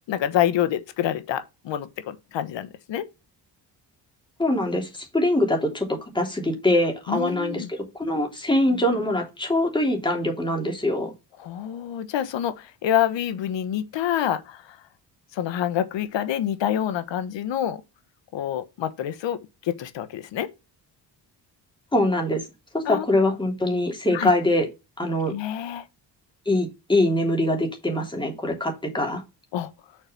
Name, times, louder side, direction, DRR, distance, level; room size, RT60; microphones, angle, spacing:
voice 1, 0.1-3.1 7.1-7.7 11.4-14.8 15.3-17.8 18.3-20.5 22.8-23.1 24.1-24.3 25.3-25.9 29.5-29.7, left 11 dB, 80° left, 1.2 m, -27 dB
voice 2, 4.4-11.1 21.9-22.4 22.7-24.7 25.0-25.3 26.5-29.2, left 1 dB, 10° left, 3.0 m, -23 dB
6.6 x 4.9 x 5.6 m
cardioid pair, 110°, 43 cm